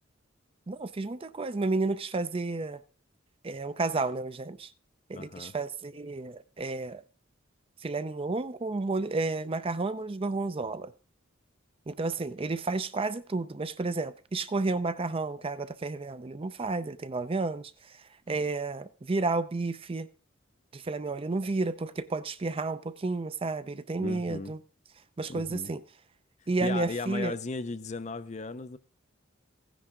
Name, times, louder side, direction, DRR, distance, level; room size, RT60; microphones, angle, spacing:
voice 1, 0.7-2.8 3.4-4.7 5.1-7.0 7.8-10.9 11.9-17.7 18.3-20.1 20.7-24.6 25.2-25.8 26.5-27.3, right 3 dB, 30° right, 0.5 m, -31 dB
voice 2, 5.1-5.5 24.0-24.5 25.3-25.7 26.6-28.8, left 3 dB, 35° left, 0.6 m, -36 dB
15.0 x 10.0 x 3.7 m
head